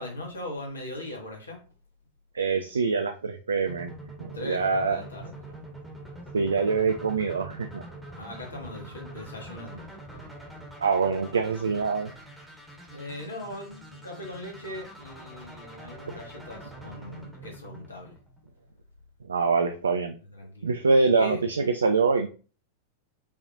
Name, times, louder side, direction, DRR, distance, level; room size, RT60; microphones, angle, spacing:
voice 1, 0.0-1.6 4.3-5.6 8.1-9.8 12.9-18.1 20.3-20.7 21.0-21.4, left 1 dB, 75° left, 0 dB, 1.4 m, -40 dB
voice 2, 2.3-3.9 4.2-5.0 6.3-7.8 10.8-12.1 19.3-20.1 20.6-22.3, right 4 dB, 70° right, 7 dB, 0.3 m, -24 dB
sound 1, 3.7-18.6, right 1 dB, ahead, 1.3 m, -45 dB
5.3 x 3.1 x 2.4 m, 0.37 s
figure-of-eight pair, 90°, 0 cm